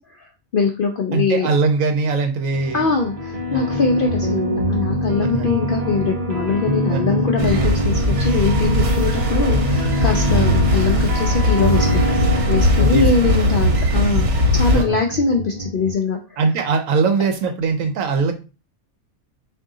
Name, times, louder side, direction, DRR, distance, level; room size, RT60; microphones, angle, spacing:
voice 1, 0.1-1.5 2.7-12.0 12.5-16.4, left 4 dB, 70° left, 2 dB, 0.5 m, -22 dB
voice 2, 1.1-2.9 3.5-3.7 5.2-5.6 6.9-7.3 12.7-13.0 14.7-15.0 16.4-18.3, right 4 dB, 75° right, 5 dB, 1.0 m, -21 dB
sound 1, 2.5-15.9, equal, 40° right, 0.6 m, -24 dB
sound 2, 7.4-14.8, left 1 dB, 60° right, 1.1 m, -19 dB
3.8 x 2.6 x 3.6 m, 0.32 s
omnidirectional pair, 1.5 m